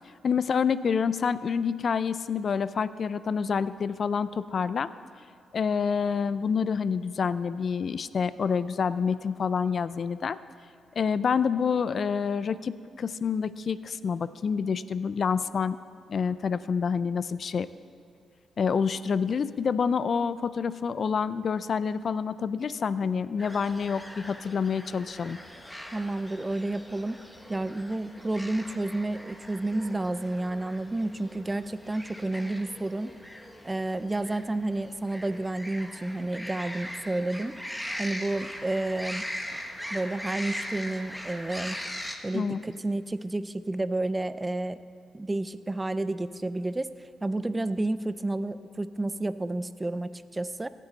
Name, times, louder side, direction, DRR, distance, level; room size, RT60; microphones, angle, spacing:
voice 1, 0.2-4.9 5.5-10.4 11.0-15.8 16.1-17.7 18.6-25.4 42.3-42.6, left 6 dB, 50° left, 15 dB, 0.3 m, -27 dB
sound 1, 23.4-42.2, equal, 5° left, 0.9 m, -41 dB
voice 2, 25.9-27.2 27.5-33.2 33.6-37.6 38.0-39.2 39.9-41.8 42.2-44.8 45.1-46.9 47.2-50.7, right 2 dB, 15° right, 14 dB, 0.4 m, -30 dB
16.5 x 8.3 x 4.0 m, 2.2 s
cardioid pair, 95°, 0 cm